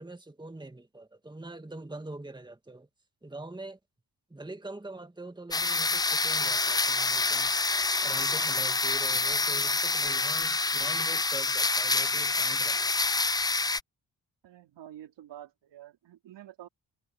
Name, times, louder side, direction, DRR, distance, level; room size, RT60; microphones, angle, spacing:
voice 1, 0.0-2.9 3.2-3.8 4.3-7.5 8.0-12.8, right 2 dB, 10° right, 2.2 m, -44 dB
sound 1, 5.5-13.8, left 3 dB, 10° left, 0.3 m, -27 dB
voice 2, 14.4-16.7, right 12 dB, 90° right, 3.8 m, -48 dB
cardioid pair, 75°, 41 cm